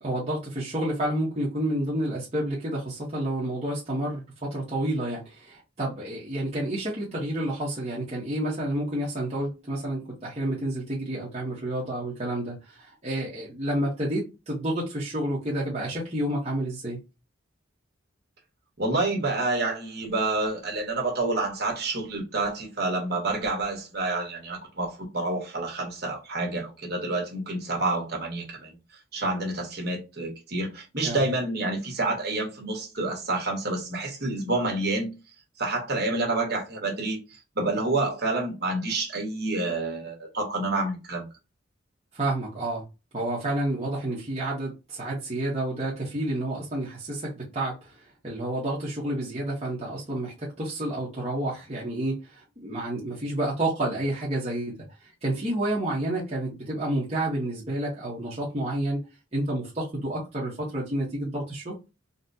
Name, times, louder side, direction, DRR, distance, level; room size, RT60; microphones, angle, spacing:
voice 1, 0.0-17.0 31.0-31.3 42.1-42.8 43.1-54.7 55.0-59.0 59.3-61.8, right 1 dB, 30° right, 0.9 m, -30 dB
voice 2, 18.8-28.8 29.1-35.1 35.6-41.3, right 2 dB, 50° right, 1.3 m, -28 dB
4.0 x 2.1 x 2.5 m
head